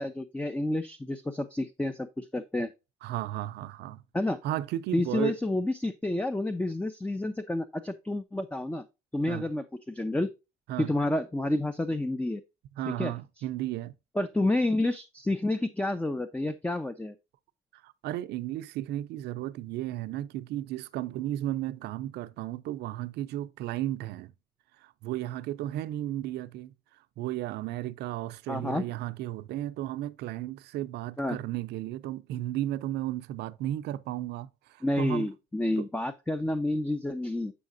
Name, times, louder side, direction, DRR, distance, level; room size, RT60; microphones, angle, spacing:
voice 1, 0.0-2.7 4.1-4.4 4.9-8.8 9.1-10.3 10.8-12.4 12.9-13.1 14.2-17.2 28.5-28.9 31.2-31.4 34.8-37.5, left 1 dB, 10° left, 0.5 m, -29 dB
voice 2, 3.0-4.0 4.4-5.4 9.3-9.5 10.7-10.9 12.8-13.9 17.7-24.3 24.8-26.7 27.2-35.3 35.8-35.9, right 14 dB, 80° right, 0.6 m, -34 dB
8.4 x 5.6 x 2.6 m
cardioid pair, 110°, 17 cm